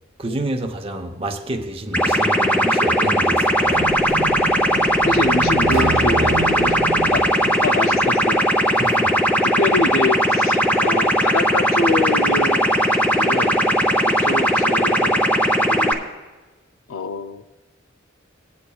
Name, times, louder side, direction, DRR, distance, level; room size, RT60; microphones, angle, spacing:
voice 1, 0.2-3.9 8.8-9.3, right 1 dB, 30° right, 0.8 m, -29 dB
sound 1, 1.9-15.9, equal, 10° left, 0.7 m, -18 dB
sound 2, 3.7-8.7, right 2 dB, 70° right, 0.8 m, -28 dB
voice 2, 5.0-6.8 7.1-7.2 7.6-8.4 9.4-12.7 13.1-13.6 14.2-15.2 15.7-16.0 16.9-17.4, left 3 dB, 90° left, 0.5 m, -25 dB
19.5 x 8.4 x 2.3 m
head